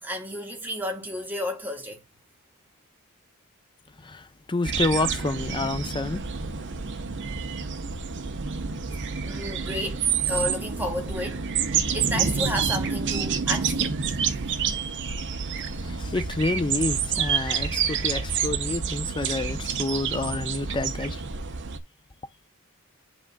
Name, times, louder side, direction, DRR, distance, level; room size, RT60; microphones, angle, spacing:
voice 1, 0.0-2.0 9.0-11.4 11.7-13.9, left 1 dB, 10° right, 1.6 m, -32 dB
voice 2, 4.0-6.3 15.6-21.2, left 2 dB, 20° left, 0.5 m, -29 dB
sound 1, 4.6-21.8, right 6 dB, 55° right, 0.8 m, -28 dB
11.0 x 3.8 x 2.2 m
head